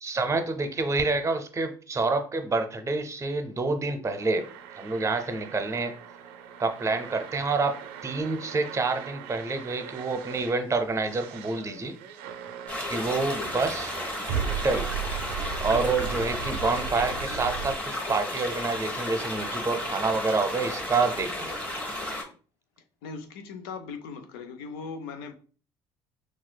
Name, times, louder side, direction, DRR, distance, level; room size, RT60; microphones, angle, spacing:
voice 1, 0.0-4.4 4.8-5.9 6.6-11.9 12.9-13.9 14.5-14.9 15.6-21.5, right 3 dB, 25° right, 0.6 m, -28 dB
sound 1, 4.0-17.8, right 8 dB, 80° right, 0.4 m, -37 dB
sound 2, 12.7-22.2, left 1 dB, 10° left, 1.2 m, -33 dB
voice 2, 23.0-25.3, left 5 dB, 80° left, 0.4 m, -39 dB
4.2 x 2.4 x 2.2 m
hypercardioid pair, 65°, 12 cm